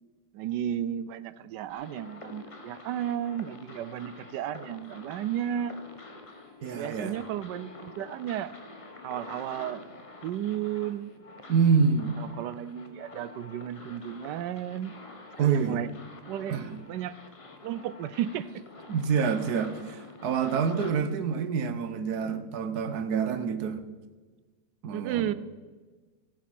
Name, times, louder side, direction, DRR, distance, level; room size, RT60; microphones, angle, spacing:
voice 1, 0.3-5.7 6.7-8.5 9.0-9.8 10.2-11.1 12.2-15.0 15.4-15.9 16.3-16.6 16.9-17.1 17.6-18.6 24.9-25.3, right 11 dB, 85° right, 15 dB, 1.2 m, -33 dB
sound 1, 1.7-20.9, left 3 dB, 25° left, 0.8 m, -47 dB
voice 2, 6.6-7.2 11.5-12.1 15.4-15.8 16.5-16.8 18.9-23.8 24.8-25.3, right 6 dB, 70° right, 10 dB, 1.4 m, -27 dB
16.0 x 7.4 x 5.9 m, 1.3 s
omnidirectional pair, 1.8 m